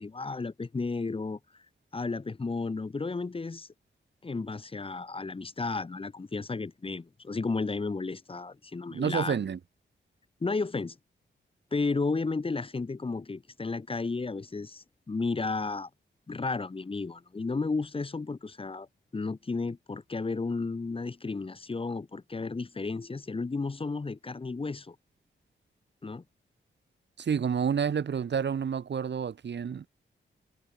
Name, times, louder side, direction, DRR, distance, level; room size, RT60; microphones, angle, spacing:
voice 1, 0.0-1.4 1.9-3.7 4.2-9.4 10.4-11.0 11.7-15.9 16.3-18.9 19.1-25.0 26.0-26.2, left 3 dB, 30° left, 1.2 m, -33 dB
voice 2, 8.9-9.6 27.2-29.9, right 7 dB, 65° right, 1.4 m, -29 dB
wide cardioid pair, 150°, 20 cm